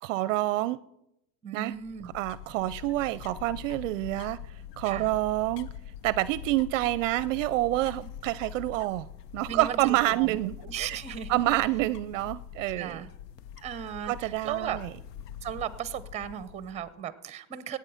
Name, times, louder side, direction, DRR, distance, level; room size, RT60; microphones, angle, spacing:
voice 1, 0.0-0.8 1.5-1.7 2.0-4.4 4.8-5.7 6.0-11.0 11.3-13.0 14.1-14.9, right 17 dB, 55° right, 18 dB, 0.5 m, -28 dB
voice 2, 1.4-2.1 4.8-5.1 8.0-8.1 9.5-10.4 10.6-11.4 12.8-13.1 13.6-14.8 15.4-17.8, right 9 dB, 15° right, 16 dB, 0.7 m, -36 dB
sound 1, 1.7-17.0, left 9 dB, 80° left, 0.8 m, -44 dB
16.5 x 8.8 x 5.7 m, 0.80 s
supercardioid pair, 135°, 47 cm